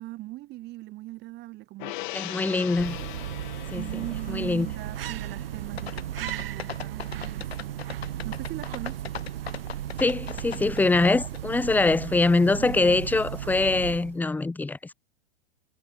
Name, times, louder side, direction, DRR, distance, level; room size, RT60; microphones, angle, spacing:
voice 1, 0.0-2.7 3.7-7.8 8.2-9.2 12.6-13.0, right 18 dB, 35° right, 2.0 m, -40 dB
Gong, 1.8-8.4 8.8-8.9, left 21 dB, 50° left, 1.5 m, -42 dB
voice 2, 2.1-3.0 3.7-3.9 4.3-4.7 10.0-14.9, left 3 dB, 5° left, 0.9 m, -23 dB
sound 1, 2.5-14.3, right 12 dB, 65° right, 3.4 m, -35 dB
sound 2, 5.8-11.4 11.7-11.8, left 7 dB, 80° left, 3.7 m, -38 dB
hypercardioid pair, 110°, 31 cm